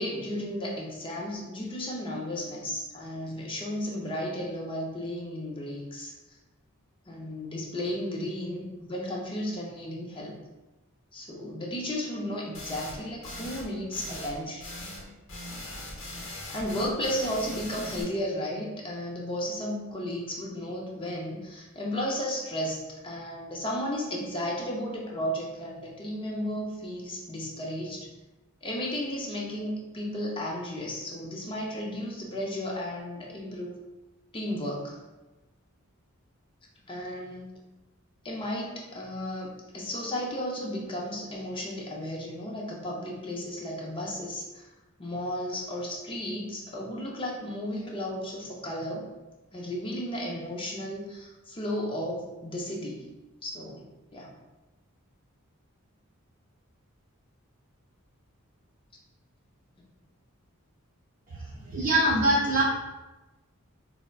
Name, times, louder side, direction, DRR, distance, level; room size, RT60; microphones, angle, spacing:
voice 1, 0.0-6.1 7.1-10.4 11.1-14.6 16.5-28.1 28.6-33.8 34.3-35.0 36.9-37.5 38.2-44.7 45.0-49.1 49.5-53.0 53.4-54.3, equal, 25° left, -2 dB, 0.5 m, -34 dB
sound 1, 12.5-13.0 13.2-13.7 13.9-14.3 14.6-15.0 15.3-18.0, left 1 dB, 60° left, 0.7 m, -40 dB
voice 2, 61.3-62.6, right 1 dB, 40° right, -6 dB, 0.5 m, -24 dB
4.4 x 2.0 x 2.3 m, 1.1 s
head